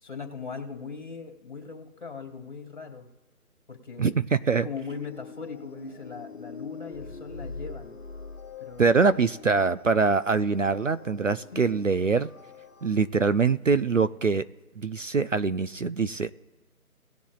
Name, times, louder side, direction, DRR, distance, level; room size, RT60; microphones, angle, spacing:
voice 1, 0.0-3.1 3.7-4.1 4.6-8.0 8.6-9.0 11.5-11.8, left 5 dB, 30° left, 3 dB, 2.4 m, -39 dB
voice 2, 4.0-4.7 8.8-12.3 12.8-14.4 14.8-16.3, right 4 dB, 60° right, 13 dB, 0.5 m, -24 dB
sound 1, 4.8-12.9, left 5 dB, 10° left, 2.5 m, -46 dB
sound 2, 6.9-9.8, left 3 dB, 55° left, 1.5 m, -43 dB
19.0 x 7.2 x 2.4 m, 1.1 s
figure-of-eight pair, 180°, 44 cm